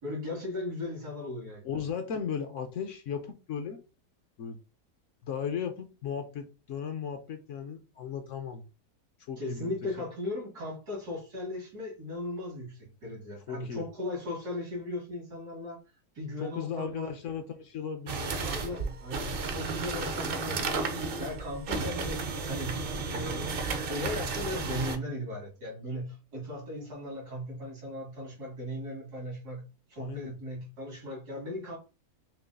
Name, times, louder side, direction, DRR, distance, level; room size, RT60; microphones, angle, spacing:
voice 1, 0.0-1.6 9.4-15.8 16.1-17.1 18.4-22.8 23.1-29.6 29.9-31.8, left 1 dB, 85° right, 2.6 m, -37 dB
voice 2, 1.6-3.8 4.4-4.6 5.2-8.6 9.3-9.7 13.5-13.9 16.4-18.3 30.0-30.3, left 7 dB, 65° left, 0.8 m, -36 dB
sound 1, 18.1-25.0, right 4 dB, 60° right, 0.6 m, -33 dB
5.8 x 2.6 x 2.3 m
omnidirectional pair, 1.6 m